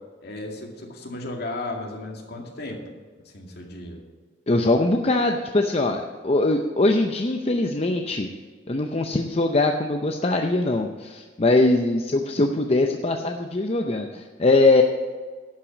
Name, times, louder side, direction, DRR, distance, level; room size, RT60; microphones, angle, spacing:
voice 1, 0.2-2.8 3.3-4.0, left 2 dB, 55° left, 1 dB, 2.2 m, -34 dB
voice 2, 4.5-8.3 8.7-14.8, left 2 dB, 30° left, 3 dB, 0.6 m, -22 dB
11.5 x 5.9 x 8.2 m, 1.5 s
head